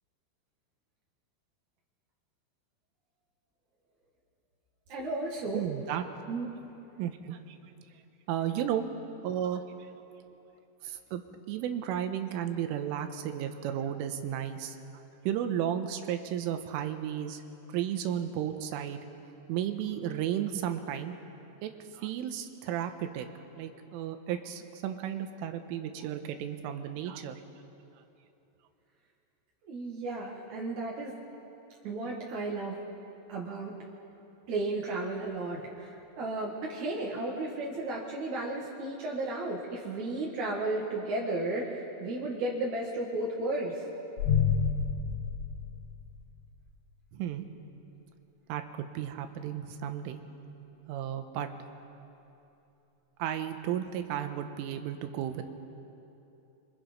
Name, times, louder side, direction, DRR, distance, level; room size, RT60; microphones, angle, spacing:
voice 1, 4.9-5.6 6.3-6.5 29.6-31.1 31.8-32.8 33.3-33.8 34.5-43.9, right 2 dB, 60° right, -3 dB, 2.0 m, -34 dB
voice 2, 5.5-6.0 7.0-7.6 8.3-8.9 9.2-9.6 10.8-11.2 11.5-14.8 15.3-17.4 17.7-19.0 19.5-21.1 21.6-23.3 23.6-27.4 47.1-47.4 48.5-50.2 50.9-51.5 53.2-55.6, right 10 dB, 80° right, 7 dB, 3.4 m, -33 dB
sound 1, 44.2-46.4, left 7 dB, 75° left, 2.1 m, -29 dB
27.0 x 24.5 x 5.2 m, 2.9 s
omnidirectional pair, 6.0 m